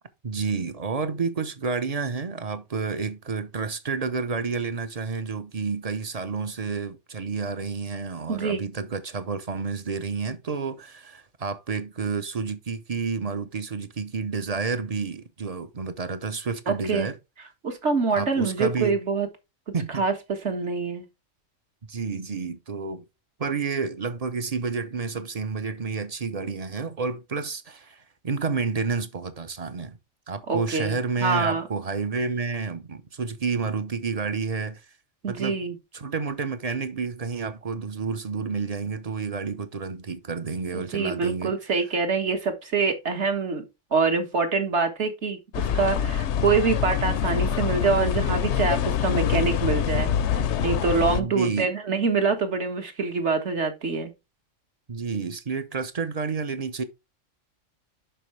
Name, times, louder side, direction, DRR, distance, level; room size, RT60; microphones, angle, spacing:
voice 1, 0.2-17.1 18.1-19.0 19.7-20.0 21.9-23.0 23.4-30.0 30.3-34.8 35.3-35.6 35.9-41.5 51.1-51.7 54.9-56.8, right 5 dB, 35° right, 0.7 m, -30 dB
voice 2, 8.3-8.6 16.7-17.1 17.6-19.3 19.9-21.1 30.5-31.6 35.2-35.8 40.7-43.6 43.9-54.1, right 4 dB, 60° right, 1.8 m, -25 dB
sound 1, 45.5-51.2, left 8 dB, 65° left, 0.9 m, -25 dB
11.0 x 4.7 x 3.2 m
omnidirectional pair, 1.3 m